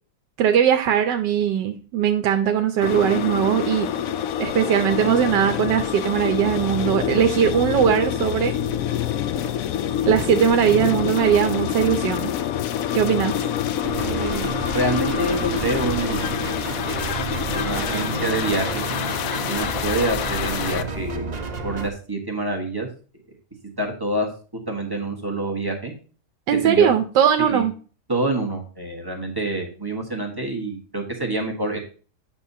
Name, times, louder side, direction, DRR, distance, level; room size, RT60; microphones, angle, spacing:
voice 1, 0.4-3.9 4.4-8.5 10.1-12.3 12.9-13.3 26.5-27.7, right 9 dB, 85° right, 6 dB, 1.3 m, -20 dB
sound 1, 2.8-20.8, left 9 dB, 70° left, 0.8 m, -26 dB
sound 2, 13.8-21.9, right 5 dB, 55° right, 0.4 m, -31 dB
voice 2, 14.1-16.3 17.5-18.8 19.5-22.9 23.8-24.3 24.7-25.9 26.6-27.0 27.4-27.6 28.1-31.8, right 2 dB, 15° right, 0 dB, 1.2 m, -26 dB
8.6 x 6.1 x 2.7 m, 0.37 s
omnidirectional pair, 1.8 m